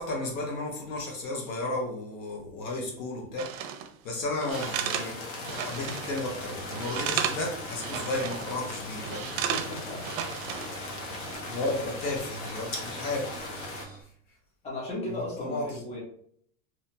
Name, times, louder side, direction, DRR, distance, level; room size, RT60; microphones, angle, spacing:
voice 1, 0.0-3.7 4.0-5.2 5.5-9.3 11.5-13.3 15.1-16.0, left 2 dB, 70° left, 0 dB, 1.2 m, -33 dB
sound 1, 3.4-3.9 4.4-6.3 6.5-7.5 7.8-8.6 9.0-10.8 11.1-11.4, right 9 dB, 75° right, 0.5 m, -33 dB
sound 2, 4.5-13.8, left 2 dB, 50° left, 0.8 m, -39 dB
sound 3, 5.7-14.0, right 3 dB, 25° right, 0.8 m, -47 dB
voice 2, 9.5-10.0 11.1-11.7 14.6-16.0, left 1 dB, 15° left, -4 dB, 0.8 m, -37 dB
2.7 x 2.2 x 2.8 m, 0.62 s
supercardioid pair, 140°, 41 cm